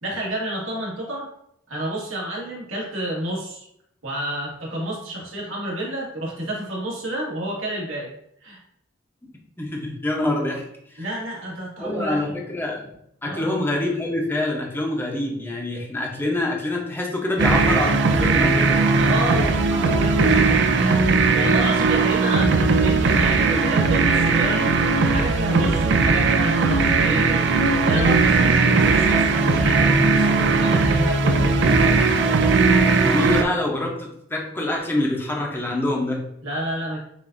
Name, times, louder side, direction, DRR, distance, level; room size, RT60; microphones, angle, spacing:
voice 1, 0.0-1.3 1.7-3.6 4.0-8.1 8.4-8.6 11.0-12.3 13.2-13.5 19.0-24.7 25.0-32.0 36.4-37.0, right 1 dB, 85° right, -4 dB, 1.8 m, -30 dB
voice 2, 9.6-10.6 10.9-11.0 11.8-12.9 13.2-18.8 33.0-36.2, left 1 dB, 10° left, -1 dB, 0.7 m, -25 dB
sound 1, 17.4-33.4, right 4 dB, 60° right, 0.4 m, -18 dB
7.1 x 2.6 x 2.6 m, 0.73 s
head